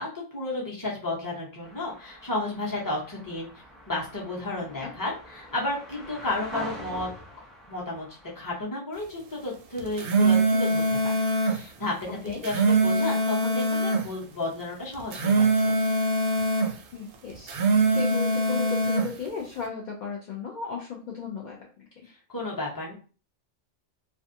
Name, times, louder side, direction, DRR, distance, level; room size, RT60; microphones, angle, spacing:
voice 1, 0.0-3.5 3.9-7.1 7.7-8.1 8.3-11.9 12.4-16.0 22.0-22.9, left 2 dB, 20° left, -4 dB, 0.7 m, -33 dB
sound 1, 1.6-8.6, equal, ahead, 0.3 m, -43 dB
sound 2, 9.8-11.6 12.3-14.1 14.9-16.7 17.4-19.1, right 2 dB, 65° right, 0.7 m, -23 dB
voice 2, 16.9-22.1, left 6 dB, 60° left, -1 dB, 0.5 m, -36 dB
2.5 x 2.3 x 2.6 m, 0.38 s
omnidirectional pair, 1.2 m